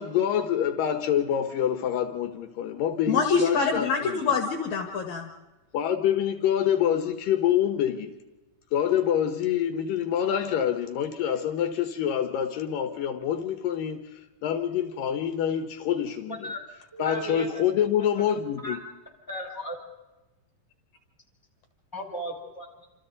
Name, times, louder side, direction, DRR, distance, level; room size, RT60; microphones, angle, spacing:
voice 1, 0.0-4.1 5.7-8.2 8.7-14.0 14.4-16.5 17.0-18.8, left 9 dB, 75° left, 2.8 m, -26 dB
voice 2, 3.1-5.3, left 5 dB, 60° left, 2.7 m, -25 dB
voice 3, 16.9-17.6 18.3-18.8 19.3-19.8 21.9-22.9, equal, 5° left, 4.7 m, -36 dB
28.5 x 27.0 x 4.0 m
omnidirectional pair, 4.0 m